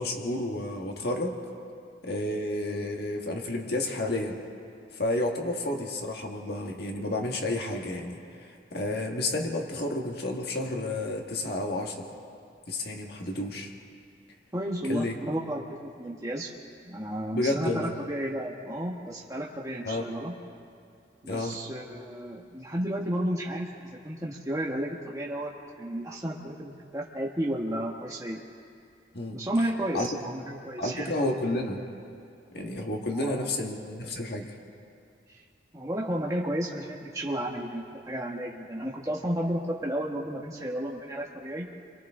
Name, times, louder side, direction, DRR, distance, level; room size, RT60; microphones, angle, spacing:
voice 1, 0.0-1.4 2.0-4.4 4.9-12.1 12.7-13.7 14.9-15.2 17.3-17.9 19.8-20.1 21.3-21.6 29.1-29.4 29.9-30.1 30.8-31.8 32.5-34.5, left 1 dB, 55° left, 1 dB, 1.7 m, -31 dB
voice 2, 14.5-16.5 16.8-20.3 21.2-25.5 25.8-28.4 29.3-31.4 33.1-33.5 35.3-35.4 35.7-41.7, right 1 dB, 20° right, -3 dB, 1.2 m, -32 dB
30.0 x 24.0 x 3.7 m, 2.4 s
head